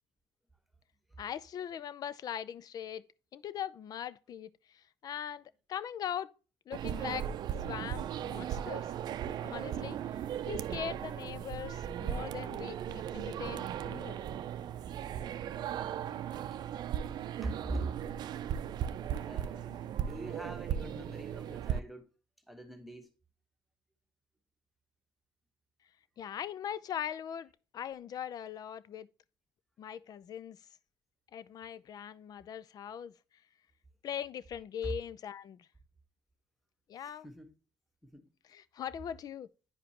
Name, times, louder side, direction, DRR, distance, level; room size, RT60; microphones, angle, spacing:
voice 1, 1.2-3.0 3.3-5.4 5.7-6.3 6.7-7.3 7.7-8.9 9.4-10.0 10.4-12.8 13.1-14.3 26.2-29.1 29.8-30.6 31.3-33.1 34.0-35.7 36.9-37.3 38.5-39.5, left 9 dB, 55° left, 0.5 m, -40 dB
sound 1, 6.7-21.8, right 9 dB, 60° right, 0.5 m, -37 dB
voice 2, 17.4-18.0 19.1-22.1 22.5-23.1 34.8-34.9 37.0-37.5 38.0-38.3, right 2 dB, ahead, 1.4 m, -42 dB
9.7 x 5.0 x 2.9 m
cardioid pair, 90°, 8 cm